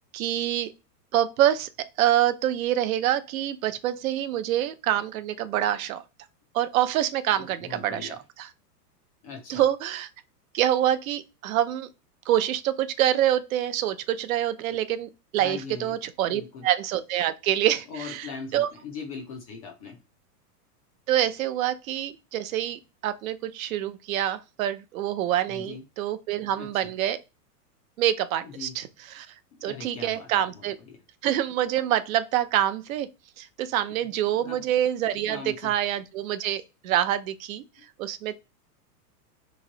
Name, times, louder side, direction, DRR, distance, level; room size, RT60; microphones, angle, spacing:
voice 1, 0.1-0.7 1.1-1.7 2.0-6.0 6.5-8.1 8.4-8.5 9.5-10.1 10.5-11.9 12.3-18.3 18.5-18.7 21.1-27.2 28.0-29.3 29.6-30.8 31.2-33.1 33.4-37.6 38.0-38.4, right 12 dB, 60° right, 0.5 m, -26 dB
voice 2, 7.3-8.2 9.2-9.6 15.4-16.0 16.2-16.7 17.9-20.0 25.5-25.8 26.6-26.9 28.4-28.7 29.6-31.0 34.4-34.6 35.3-35.7, left 5 dB, 25° left, 0.3 m, -40 dB
3.0 x 2.6 x 3.7 m
hypercardioid pair, 135°, 48 cm